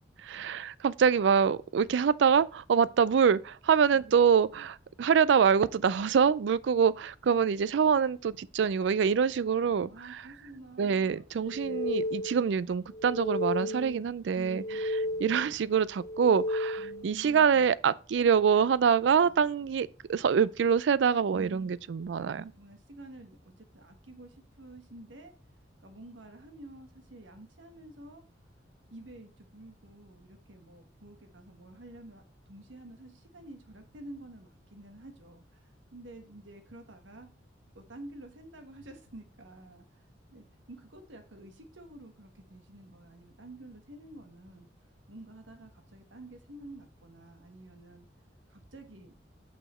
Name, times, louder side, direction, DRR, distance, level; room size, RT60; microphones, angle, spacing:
voice 1, 0.2-9.9 10.8-14.6 15.2-22.4, right 7 dB, 70° right, 0.4 m, -25 dB
voice 2, 9.1-12.0 13.6-15.6 16.8-17.7 19.2-19.4 21.3-21.8 22.3-25.3 25.8-28.2 28.9-37.3 37.7-40.1 40.3-44.7 45.1-48.1 48.5-49.2, right 1 dB, 85° right, 1.4 m, -50 dB
sound 1, 11.4-12.6 12.9-14.1 14.4-15.6 16.0-17.1, left 1 dB, 20° left, 0.5 m, -33 dB
6.4 x 5.5 x 4.2 m
head